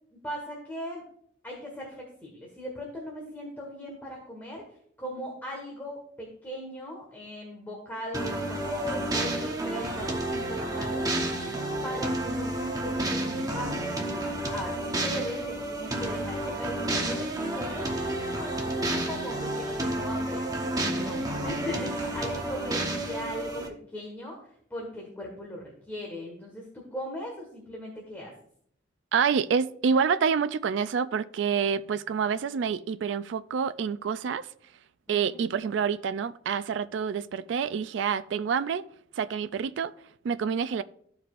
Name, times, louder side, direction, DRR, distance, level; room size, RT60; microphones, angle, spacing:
voice 1, 0.1-1.0 1.4-4.6 5.0-11.5 11.8-14.2 14.5-23.6 23.9-28.3 35.1-35.5, equal, 10° left, 1.5 m, -39 dB
sound 1, 8.1-23.7, right 1 dB, 20° right, 1.0 m, -30 dB
voice 2, 29.1-34.5 35.1-38.9 39.2-39.9 40.2-40.8, right 6 dB, 70° right, 0.3 m, -27 dB
14.0 x 4.8 x 2.5 m
head